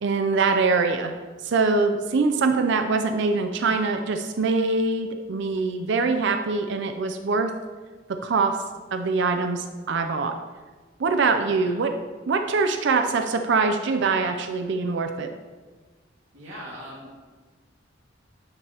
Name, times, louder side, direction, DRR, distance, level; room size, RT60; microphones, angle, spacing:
voice 1, 0.0-1.1 1.4-7.6 8.1-8.6 8.9-10.4 11.0-11.9 12.3-15.3, right 4 dB, 65° right, 6 dB, 0.5 m, -23 dB
voice 2, 11.4-11.8 16.3-17.2, equal, 85° right, -6 dB, 2.0 m, -41 dB
9.5 x 7.4 x 2.9 m, 1.4 s
head